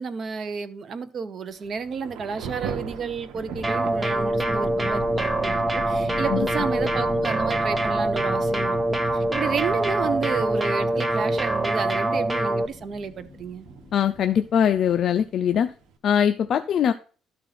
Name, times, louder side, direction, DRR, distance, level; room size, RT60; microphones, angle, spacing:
voice 1, 0.0-13.7, right 5 dB, 45° right, 0.8 m, -31 dB
Thunder / Rain, 1.5-16.0, right 6 dB, 90° right, 1.2 m, -43 dB
sound 1, 3.3-15.6, left 3 dB, 40° left, 1.6 m, -40 dB
sound 2, 3.6-12.7, right 1 dB, 10° right, 0.6 m, -24 dB
voice 2, 13.9-15.7 16.0-16.9, left 8 dB, 55° left, 0.4 m, -21 dB
12.5 x 4.3 x 4.1 m
cardioid pair, 125°, 0 cm